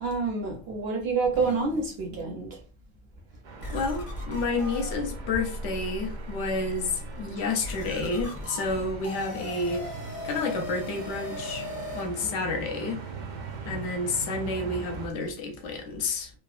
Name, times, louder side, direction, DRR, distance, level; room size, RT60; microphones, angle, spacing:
voice 1, 0.0-2.5, right 4 dB, 60° right, 0.7 m, -28 dB
sound 1, 1.2-2.4 3.0-3.1 3.6-12.1, left 1 dB, 35° left, 0.6 m, -38 dB
sound 2, 3.4-15.1, right 4 dB, 90° right, 0.4 m, -41 dB
voice 2, 3.7-9.9 10.2-11.7 11.9-13.0 13.6-16.3, left 3 dB, 70° left, 0.9 m, -30 dB
2.9 x 2.1 x 2.3 m
omnidirectional pair, 1.4 m